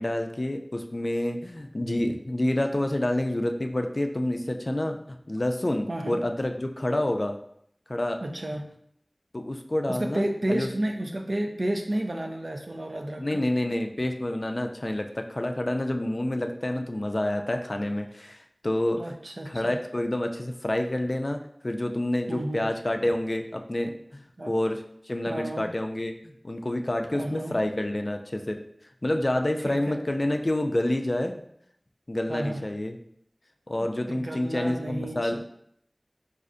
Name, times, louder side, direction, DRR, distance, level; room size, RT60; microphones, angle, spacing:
voice 1, 0.0-5.0 5.3-7.4 7.9-8.2 9.3-10.7 13.2-19.0 19.5-28.6 29.0-31.4 32.1-33.0 33.7-35.4, left 1 dB, 55° left, 4 dB, 0.3 m, -28 dB
voice 2, 8.2-8.7 9.9-13.5 18.9-19.8 22.3-22.7 24.4-24.5 25.3-25.7 27.1-27.6 29.6-30.0 32.3-32.6 34.1-35.4, right 1 dB, 85° right, 3 dB, 0.4 m, -32 dB
4.1 x 2.4 x 2.5 m, 0.69 s
wide cardioid pair, 40°, 0 cm